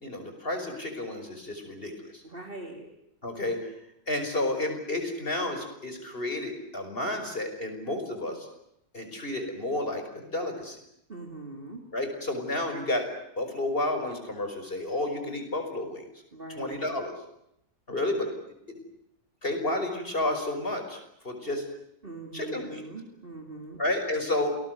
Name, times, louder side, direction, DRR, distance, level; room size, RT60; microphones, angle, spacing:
voice 1, 0.0-2.2 3.2-3.6 4.1-8.5 8.9-10.8 11.9-13.1 13.4-16.0 16.6-17.1 17.9-18.3 19.4-21.0 21.2-21.6 22.3-22.8 23.8-24.6, left 1 dB, 35° left, 5 dB, 5.8 m, -31 dB
voice 2, 2.2-2.9 11.1-11.8 16.3-16.9 22.0-23.8, right 2 dB, 35° right, 4 dB, 3.5 m, -42 dB
28.5 x 20.5 x 9.4 m, 0.79 s
omnidirectional pair, 1.7 m